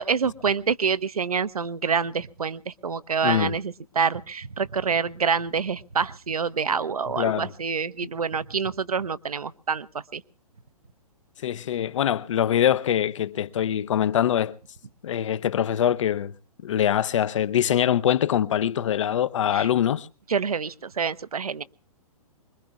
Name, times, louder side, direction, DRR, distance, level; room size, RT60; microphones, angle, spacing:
voice 1, 0.0-10.2 19.5-19.7 20.3-21.6, right 6 dB, 75° right, 0.8 m, -27 dB
voice 2, 3.2-3.5 7.2-7.5 11.4-14.6 15.0-16.3 16.6-20.1, left 10 dB, 55° left, 0.7 m, -23 dB
25.0 x 22.0 x 2.4 m
figure-of-eight pair, 115°, 19 cm